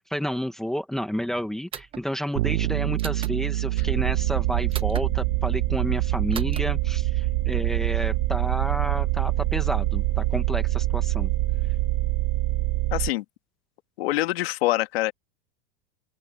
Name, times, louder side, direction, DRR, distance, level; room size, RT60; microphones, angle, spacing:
voice 1, 0.1-11.3, equal, ahead, 1.5 m, -31 dB
sound 1, 1.7-2.1 3.0-3.4 4.7-5.1 6.3-6.6, right 8 dB, 20° right, 1.2 m, -37 dB
Bass guitar, 2.4-12.2, right 17 dB, 80° right, 3.7 m, -30 dB
sound 2, 3.8-13.1, right 18 dB, 40° right, 1.8 m, -25 dB
voice 2, 12.9-13.2 14.0-15.1, left 17 dB, 80° left, 2.0 m, -25 dB
open air
supercardioid pair, 170°, 30 cm